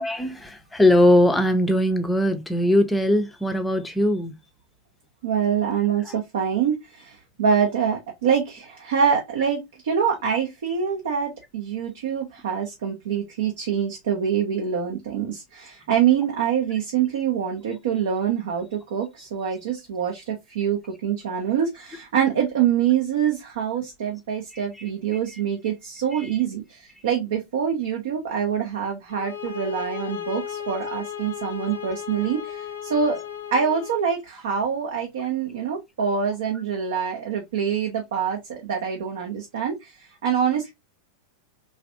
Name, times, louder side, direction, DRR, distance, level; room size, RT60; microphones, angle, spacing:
voice 1, 0.0-4.3 6.0-6.2 24.5-24.6 25.3-25.4 26.1-26.3, left 1 dB, 10° left, 0.6 m, -20 dB
voice 2, 5.2-32.6 32.8-33.2 33.5-39.9 40.2-40.7, right 7 dB, 60° right, 0.6 m, -25 dB
sound 1, 29.1-34.1, left 9 dB, 60° left, 0.4 m, -35 dB
3.3 x 2.5 x 2.5 m
figure-of-eight pair, 90°, 0 cm